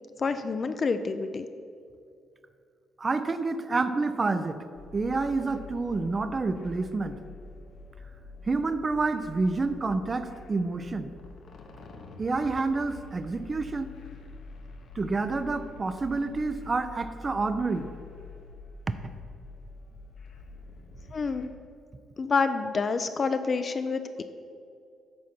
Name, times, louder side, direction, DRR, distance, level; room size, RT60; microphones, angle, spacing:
voice 1, 0.2-1.5 21.1-21.5 22.2-24.2, left 4 dB, 40° left, 9 dB, 0.4 m, -28 dB
voice 2, 3.0-4.6 4.9-7.2 8.5-11.1 12.2-13.9 15.0-17.9 18.9-19.0, right 3 dB, 30° right, 11 dB, 0.4 m, -28 dB
sound 1, 4.7-21.5, left 3 dB, 65° left, 0.9 m, -46 dB
7.6 x 4.1 x 5.9 m, 2.4 s
cardioid pair, 90°, 0 cm